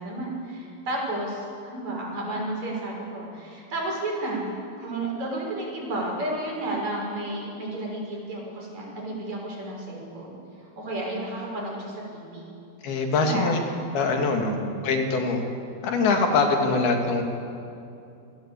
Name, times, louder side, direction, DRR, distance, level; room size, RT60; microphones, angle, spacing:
voice 1, 0.0-4.5 4.8-10.4 10.6-12.5 13.2-13.8 14.3-14.7, right 1 dB, 45° right, -2 dB, 7.3 m, -32 dB
voice 2, 12.8-13.6 13.9-14.5 14.8-15.4 15.8-17.2, left 3 dB, 75° left, 3 dB, 4.1 m, -23 dB
28.5 x 18.5 x 8.3 m, 2.7 s
omnidirectional pair, 4.5 m